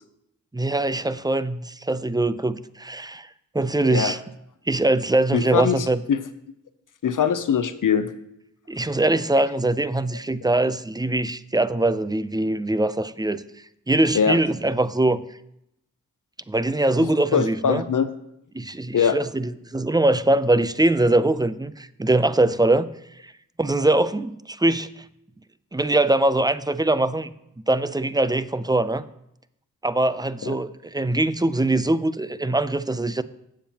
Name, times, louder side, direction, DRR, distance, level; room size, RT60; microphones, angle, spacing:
voice 1, 0.5-3.3 3.5-4.2 4.7-6.0 8.7-13.4 13.9-15.2 16.5-17.8 18.5-22.9 23.2-23.3 23.6-25.0 25.7-27.3 27.7-29.1 29.8-33.2, right 2 dB, 10° right, 14 dB, 0.5 m, -22 dB
voice 2, 5.3-6.2 7.0-8.1 14.1-14.4 17.0-18.1 18.9-19.2 30.4-30.6, left 7 dB, 70° left, 11 dB, 0.7 m, -22 dB
17.0 x 7.3 x 2.9 m, 0.79 s
cardioid pair, 50°, 33 cm